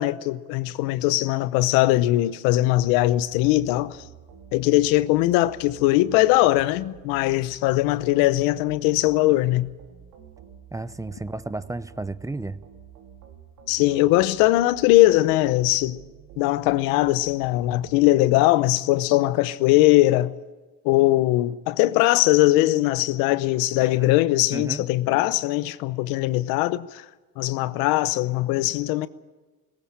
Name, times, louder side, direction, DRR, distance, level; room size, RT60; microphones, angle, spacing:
voice 1, 0.0-4.0 4.5-9.7 13.7-16.0 16.4-20.3 20.8-27.0 27.4-29.1, left 17 dB, 90° left, 0.8 m, -20 dB
sound 1, 2.7-18.0, right 8 dB, 80° right, 3.7 m, -49 dB
voice 2, 10.7-12.6 23.8-24.1 24.5-25.3, right 2 dB, 10° right, 0.7 m, -33 dB
19.0 x 17.0 x 8.8 m
supercardioid pair, 85°, 34 cm